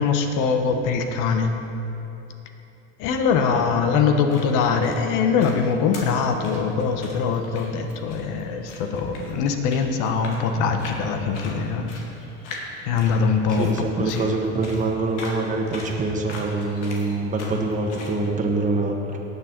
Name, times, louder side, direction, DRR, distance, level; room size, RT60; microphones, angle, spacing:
voice 1, 0.0-1.5 3.0-11.9 12.9-14.3, left 5 dB, 60° left, 5 dB, 1.3 m, -22 dB
sound 1, 4.0-18.2, left 2 dB, 80° left, 2.3 m, -41 dB
voice 2, 13.5-19.2, right 3 dB, 20° right, 0 dB, 1.5 m, -25 dB
18.5 x 6.7 x 4.5 m, 3.0 s
supercardioid pair, 100°, 35 cm